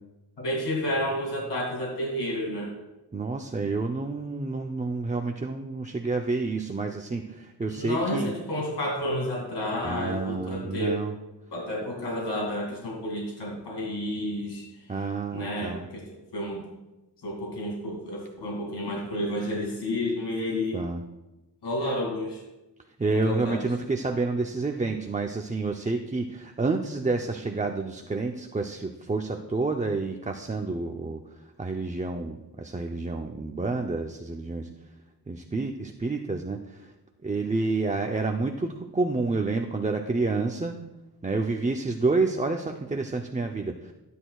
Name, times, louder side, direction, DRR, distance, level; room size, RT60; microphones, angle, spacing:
voice 1, 0.4-2.7 7.7-11.0 11.5-15.0 15.3-16.0 16.3-16.6 17.2-20.8 21.6-22.4 23.0-23.6, left 1 dB, 80° left, -2 dB, 2.5 m, -30 dB
voice 2, 3.1-8.3 9.8-11.1 14.9-15.9 20.7-21.0 23.0-34.7 35.3-36.9 37.2-40.8 41.2-43.9, right 3 dB, 20° right, 3 dB, 0.6 m, -29 dB
17.0 x 10.0 x 2.4 m, 1.0 s
wide cardioid pair, 110°, 41 cm